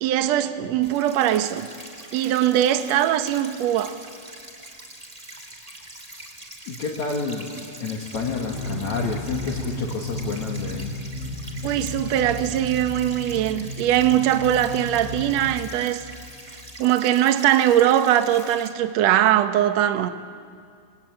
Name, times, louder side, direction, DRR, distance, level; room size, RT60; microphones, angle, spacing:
voice 1, 0.0-1.7 2.1-4.0 11.6-16.0 16.8-20.1, right 11 dB, 65° right, 1.7 m, -21 dB
sound 1, 0.8-18.7, right 1 dB, 10° right, 2.8 m, -43 dB
voice 2, 6.7-10.9, left 4 dB, 55° left, 3.1 m, -29 dB
sound 2, 8.1-16.8, left 1 dB, 75° left, 7.0 m, -34 dB
28.5 x 21.5 x 9.0 m
omnidirectional pair, 4.4 m